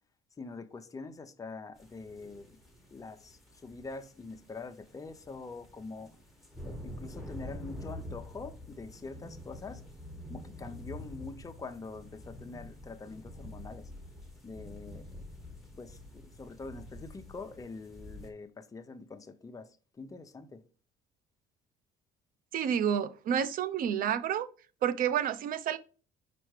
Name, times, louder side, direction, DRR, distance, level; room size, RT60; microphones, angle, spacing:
voice 1, 0.4-2.6 2.9-6.1 6.6-9.8 10.3-13.9 14.4-15.1 15.8-19.7 20.0-20.6, left 4 dB, 20° left, 0.7 m, -44 dB
sound 1, 1.8-18.3, equal, ahead, 1.6 m, -47 dB
voice 2, 22.5-24.5 24.8-25.8, right 9 dB, 60° right, 0.6 m, -29 dB
5.1 x 4.4 x 4.8 m
cardioid pair, 110°, 17 cm